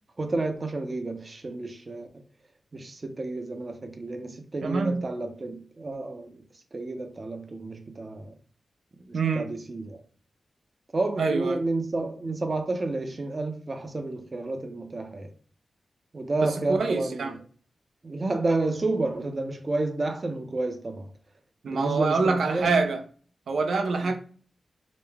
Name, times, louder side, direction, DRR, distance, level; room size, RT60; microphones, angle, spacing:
voice 1, 0.2-2.1 2.7-6.4 6.7-8.3 9.1-10.0 10.9-15.3 16.1-17.4 18.0-21.1 21.7-22.7, right 2 dB, 35° right, 0.6 m, -30 dB
voice 2, 4.6-5.1 9.1-9.5 11.2-11.6 16.4-17.3 21.6-23.0 23.5-24.2, right 4 dB, 80° right, 0.5 m, -25 dB
5.1 x 2.1 x 3.4 m
wide cardioid pair, 95°, 0 cm